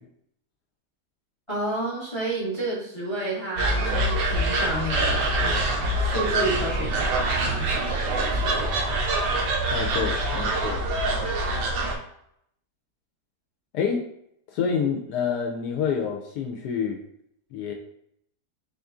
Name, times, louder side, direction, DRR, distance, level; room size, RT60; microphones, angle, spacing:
voice 1, 1.5-8.8, right 1 dB, 25° left, -5 dB, 0.7 m, -31 dB
sound 1, 3.6-12.0, right 2 dB, 85° right, 1.3 m, -25 dB
voice 2, 9.7-10.8 13.7-14.0 14.5-17.0 17.5-17.7, left 6 dB, 80° left, 1 dB, 1.1 m, -27 dB
4.1 x 2.5 x 3.5 m, 0.74 s
omnidirectional pair, 1.8 m